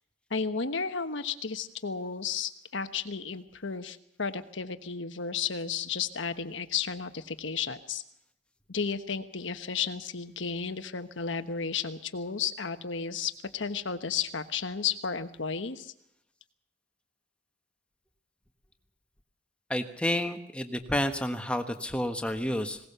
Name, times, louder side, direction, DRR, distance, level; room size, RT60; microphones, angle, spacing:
voice 1, 0.3-8.0 8.7-15.9, left 6 dB, 75° left, 10 dB, 1.2 m, -33 dB
voice 2, 19.7-22.8, left 1 dB, 5° left, 6 dB, 1.3 m, -30 dB
20.5 x 18.5 x 6.9 m, 0.77 s
head